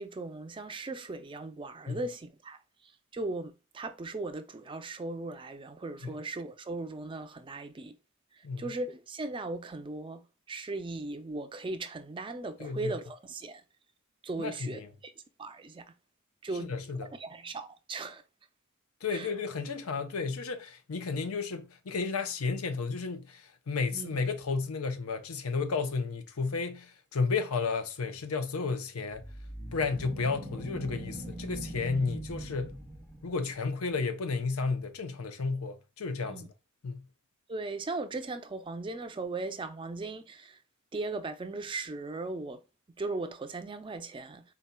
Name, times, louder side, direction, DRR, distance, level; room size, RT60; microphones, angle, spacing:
voice 1, 0.0-2.6 2.8-8.0 8.6-13.6 14.2-15.1 15.4-15.8 16.4-16.7 17.0-18.2 19.1-19.3 23.9-24.1 36.2-36.5 37.5-40.6 40.9-42.6 43.0-44.4, right 2 dB, 25° right, 0.4 m, -38 dB
voice 2, 12.6-12.9 14.4-14.9 16.6-17.1 19.0-29.2 29.7-32.7 33.2-36.5 36.8-37.0, left 4 dB, 80° left, 0.6 m, -32 dB
sound 1, 29.1-33.5, right 1 dB, 10° left, 0.9 m, -41 dB
4.2 x 4.0 x 2.2 m
head